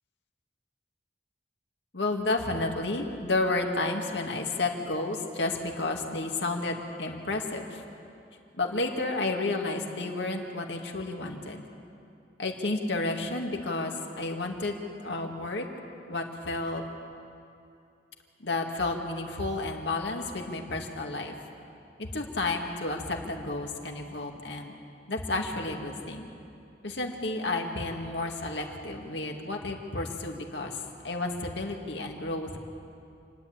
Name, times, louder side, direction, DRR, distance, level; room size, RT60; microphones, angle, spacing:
voice 1, 1.9-7.8 8.6-11.6 12.4-15.7 16.1-16.8 18.4-21.3 22.0-24.7 25.1-26.3 26.8-30.8 31.0-32.6, left 2 dB, 80° left, 2 dB, 2.0 m, -31 dB
28.5 x 11.0 x 8.7 m, 2.6 s
head